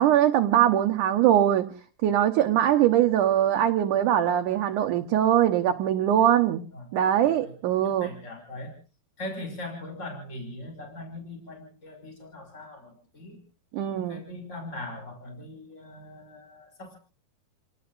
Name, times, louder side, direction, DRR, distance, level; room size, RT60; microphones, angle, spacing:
voice 1, 0.0-1.7 2.0-6.6 6.9-8.1 13.7-14.2, right 11 dB, 70° right, 5 dB, 2.2 m, -22 dB
voice 2, 7.1-7.5 7.8-8.7 9.2-13.4 13.9-17.0, left 1 dB, 20° left, 4 dB, 6.0 m, -40 dB
30.0 x 19.0 x 2.6 m, 0.38 s
omnidirectional pair, 4.3 m